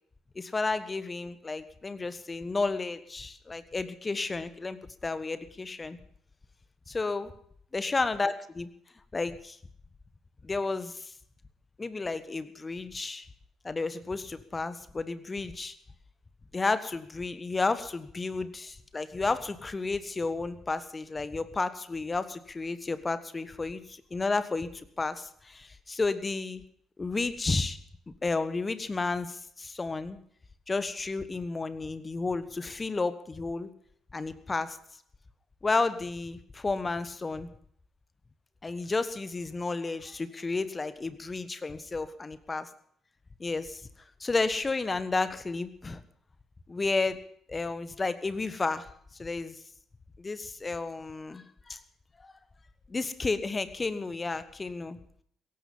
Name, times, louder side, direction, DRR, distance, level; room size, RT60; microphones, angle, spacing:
voice 1, 0.3-4.8 5.0-6.0 6.9-7.3 7.7-8.7 9.1-9.6 10.4-11.1 11.8-13.2 13.6-15.7 16.5-24.7 25.0-26.6 27.0-27.8 28.1-30.2 30.7-33.7 34.1-34.8 35.6-37.5 38.6-42.7 43.4-43.8 44.2-46.0 46.7-47.2 47.5-48.9 49.2-49.6 50.2-51.8 52.2-52.3 52.9-55.0, left 3 dB, 25° left, 12 dB, 1.4 m, -32 dB
17.0 x 15.0 x 5.5 m, 0.63 s
figure-of-eight pair, 45°, 0 cm